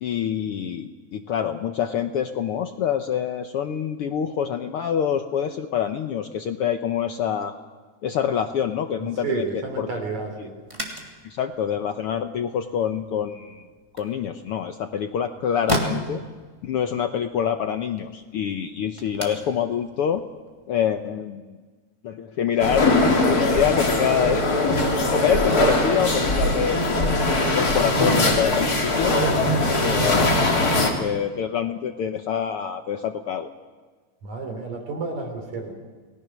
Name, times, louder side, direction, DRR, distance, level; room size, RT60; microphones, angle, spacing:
voice 1, 0.0-7.5 8.0-9.4 9.8-9.9 10.4-10.5 11.2-13.7 13.9-16.2 16.6-20.2 20.7-21.6 22.0-23.0 23.3-24.8 25.1-27.2 27.5-29.2 29.6-30.4 30.8-33.5, left 8 dB, 70° left, 7 dB, 1.4 m, -26 dB
voice 2, 9.2-10.5 29.2-29.9 34.2-35.7, right 4 dB, 70° right, 3 dB, 5.0 m, -31 dB
sound 1, 10.6-21.1, equal, 10° right, 2.7 m, -36 dB
sound 2, 22.6-30.9, left 2 dB, 30° left, 2.9 m, -21 dB
29.5 x 19.5 x 6.2 m, 1.4 s
omnidirectional pair, 3.4 m